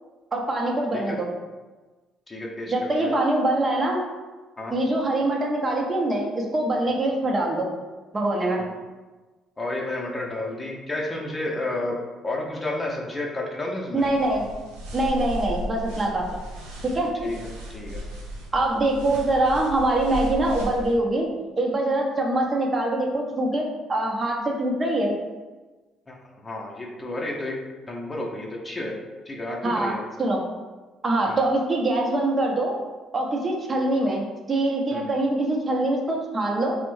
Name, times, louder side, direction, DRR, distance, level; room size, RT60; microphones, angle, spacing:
voice 1, 0.3-1.3 2.7-4.0 4.7-7.7 8.1-8.6 13.9-14.4 14.9-16.2 16.8-17.1 18.5-23.6 23.9-25.1 29.6-29.9 30.2-30.4 31.0-32.8 33.1-36.8, right 2 dB, 35° right, -1 dB, 0.7 m, -24 dB
voice 2, 2.3-3.2 4.6-4.8 9.6-12.0 12.2-14.0 17.2-18.0 26.1-26.2 26.4-27.6 27.9-28.9 29.3-30.0 31.3-31.4 34.9-35.1, left 2 dB, 25° left, -1 dB, 0.7 m, -31 dB
sound 1, 14.0-21.0, equal, 85° right, 0.5 m, -35 dB
3.3 x 2.1 x 3.1 m, 1.3 s
hypercardioid pair, 50°, 0 cm